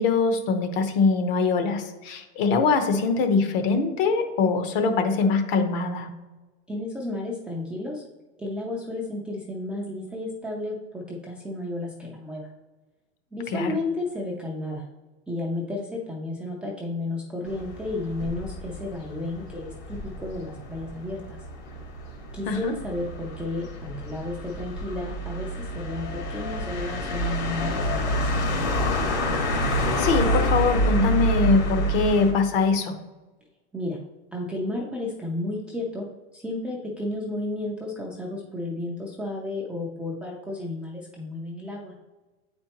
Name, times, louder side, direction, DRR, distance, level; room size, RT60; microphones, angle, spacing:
voice 1, 0.0-6.1 13.5-13.7 22.5-22.7 29.6-33.0, left 4 dB, 50° left, 7 dB, 0.9 m, -23 dB
voice 2, 6.7-8.0 8.4-12.5 13.3-14.8 15.3-21.4 22.3-26.0 26.3-28.3 33.7-34.0 34.3-36.1 36.3-41.9, left 2 dB, 5° right, -5 dB, 0.4 m, -32 dB
sound 1, 17.5-32.3, equal, 70° left, 1.9 m, -27 dB
8.3 x 4.4 x 2.9 m, 1.2 s
supercardioid pair, 155°, 35 cm